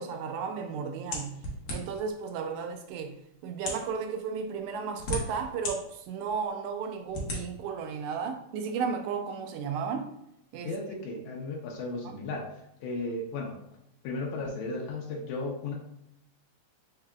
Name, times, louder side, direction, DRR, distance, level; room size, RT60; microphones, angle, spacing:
voice 1, 0.0-1.4 1.7-10.1 10.5-10.8, right 6 dB, 85° right, 1.9 m, -34 dB
sound 1, 1.1-2.1 2.9-3.0 3.5-3.9 4.7-5.7 6.3-6.4 7.1-7.4, left 1 dB, 60° left, 1.7 m, -34 dB
voice 2, 10.7-12.5 12.8-13.5 14.0-15.7, left 2 dB, 90° left, 2.2 m, -35 dB
4.8 x 4.7 x 2.3 m
omnidirectional pair, 3.3 m